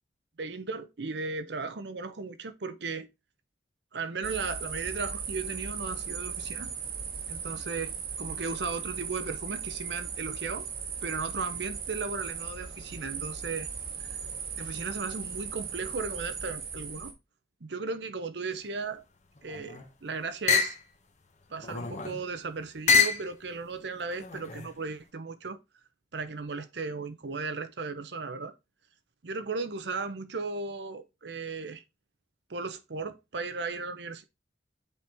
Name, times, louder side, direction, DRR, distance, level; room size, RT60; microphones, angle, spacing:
voice 1, 0.4-3.1 3.9-6.7 7.3-10.7 11.0-13.7 14.6-17.1 17.6-19.0 19.4-20.8 21.5-25.6 26.1-28.5 29.2-31.8 32.5-34.2, right 4 dB, 75° right, 0.7 m, -36 dB
sound 1, 4.2-17.1, right 6 dB, 50° right, 1.2 m, -37 dB
sound 2, 19.4-19.9 20.5-20.8 21.6-22.2 22.9-23.3 24.1-24.7, left 5 dB, 40° left, 1.0 m, -26 dB
7.1 x 4.7 x 3.5 m
head